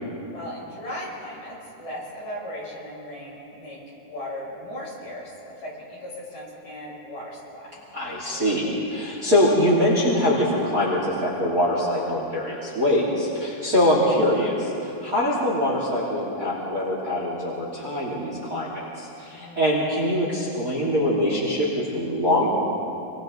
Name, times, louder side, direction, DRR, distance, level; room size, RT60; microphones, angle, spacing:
voice 1, 0.3-3.8 4.1-7.8 13.7-14.0 19.3-19.8, left 1 dB, 50° left, -6 dB, 8.4 m, -37 dB
voice 2, 7.9-22.5, left 1 dB, 25° right, -5 dB, 3.0 m, -23 dB
28.5 x 23.5 x 4.1 m, 2.9 s
omnidirectional pair, 4.6 m